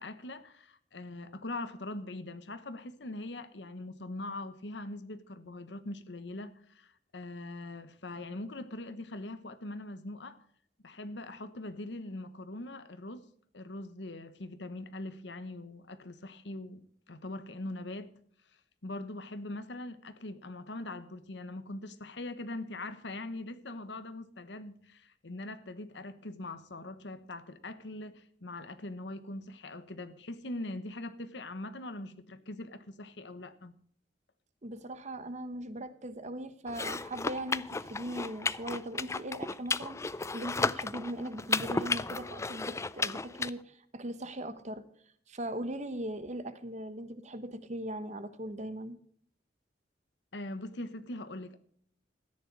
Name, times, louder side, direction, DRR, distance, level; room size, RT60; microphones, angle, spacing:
voice 1, 0.0-10.4 10.8-13.2 13.5-18.1 18.8-33.7 50.3-51.6, left 2 dB, 75° left, 1.2 m, -42 dB
voice 2, 34.6-40.0 40.3-44.8 45.3-49.0, right 1 dB, 40° right, 1.1 m, -39 dB
sound 1, 36.7-43.5, left 4 dB, 15° left, 0.4 m, -34 dB
14.0 x 9.9 x 4.7 m
head